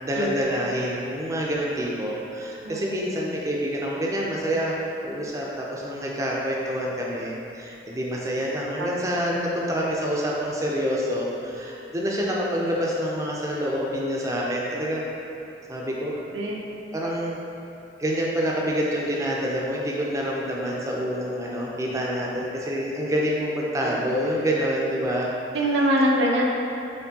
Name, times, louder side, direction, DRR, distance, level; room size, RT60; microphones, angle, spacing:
voice 1, 0.0-15.0 15.7-16.1 16.9-17.4 18.0-25.3, equal, 20° right, -3 dB, 0.5 m, -27 dB
voice 2, 25.5-26.4, equal, 90° right, -2 dB, 0.6 m, -22 dB
4.3 x 3.2 x 2.8 m, 2.9 s
head